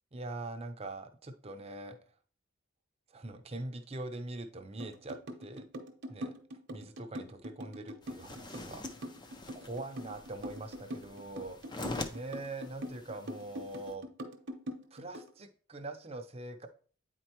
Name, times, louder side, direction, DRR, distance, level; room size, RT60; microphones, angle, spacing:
voice 1, 0.1-2.0 3.1-5.7 6.1-6.3 6.7-8.8 9.5-14.1 14.9-16.7, right 2 dB, 30° right, 6 dB, 0.6 m, -43 dB
sound 1, 4.8-15.3, equal, 55° right, 0.8 m, -43 dB
sound 2, 8.0-13.9, left 2 dB, 20° left, 0.4 m, -45 dB
8.6 x 4.4 x 3.0 m, 0.42 s
head